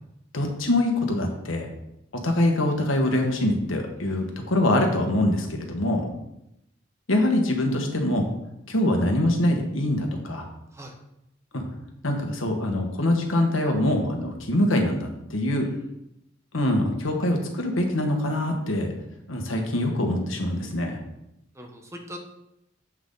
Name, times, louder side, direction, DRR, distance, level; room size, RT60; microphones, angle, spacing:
voice 1, 0.3-1.7 2.1-6.1 7.1-8.2 8.7-10.5 11.5-11.6 12.0-15.7 16.5-18.9 19.3-21.0, left 1 dB, 90° left, 3 dB, 1.5 m, -24 dB
voice 2, 4.0-4.3 10.7-11.0 15.6-15.7 21.5-22.2, equal, 15° right, 3 dB, 1.0 m, -42 dB
8.1 x 6.1 x 3.9 m, 0.83 s
head